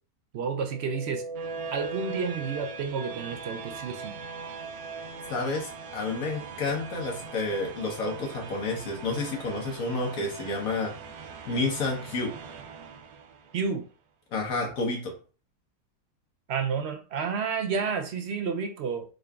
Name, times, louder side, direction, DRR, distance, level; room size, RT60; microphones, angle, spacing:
voice 1, 0.3-1.2 1.7-4.2 13.5-13.8 16.5-19.0, right 5 dB, 65° right, 5 dB, 0.7 m, -30 dB
sound 1, 0.6-13.6, right 4 dB, 85° right, 1.1 m, -40 dB
voice 2, 5.3-10.9 11.4-12.3 14.3-15.1, left 3 dB, 75° left, -1 dB, 1.3 m, -30 dB
3.7 x 2.4 x 3.3 m, 0.36 s
omnidirectional pair, 1.5 m